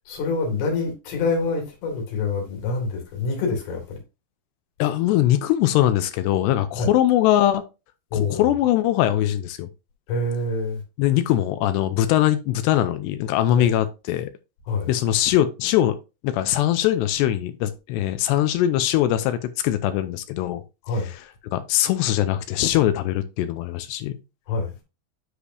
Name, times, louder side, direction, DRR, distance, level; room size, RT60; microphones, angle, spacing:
voice 1, 0.1-4.0 6.8-6.9 8.1-8.4 10.1-10.8 13.5-13.7 14.7-14.9 20.9-21.1 24.5-24.7, left 3 dB, 65° left, 4.3 m, -26 dB
voice 2, 4.8-7.6 8.1-9.7 11.0-14.3 14.9-16.0 16.2-20.6 21.0-24.2, left 13 dB, 80° left, 2.6 m, -21 dB
9.9 x 5.0 x 2.7 m
omnidirectional pair, 5.3 m